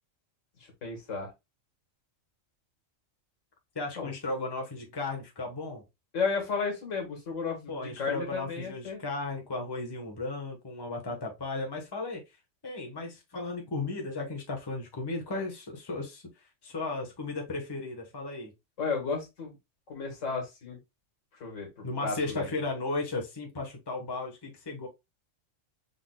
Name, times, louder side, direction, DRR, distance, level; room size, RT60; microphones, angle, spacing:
voice 1, 0.8-1.3 4.0-4.1 6.1-9.0 18.8-19.6 19.9-20.8 21.4-22.5, left 4 dB, 70° left, 1.9 m, -33 dB
voice 2, 3.7-5.8 7.7-12.2 12.6-16.3 16.6-18.5 21.8-24.9, left 3 dB, 20° left, 1.1 m, -35 dB
5.8 x 3.9 x 2.2 m
omnidirectional pair, 1.4 m